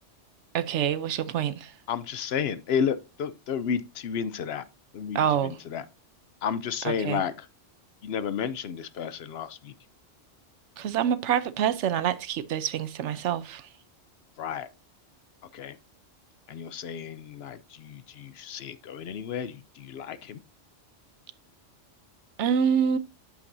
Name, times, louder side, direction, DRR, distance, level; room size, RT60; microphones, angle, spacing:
voice 1, 0.5-1.7 5.1-5.5 6.8-7.2 10.8-13.7 22.4-23.0, right 8 dB, 75° right, 1.0 m, -26 dB
voice 2, 1.9-4.6 4.9-5.9 6.4-7.5 8.0-9.7 14.4-14.7 15.5-15.8 16.5-20.4, left 7 dB, 65° left, 0.8 m, -32 dB
8.5 x 7.6 x 2.6 m
omnidirectional pair, 1.3 m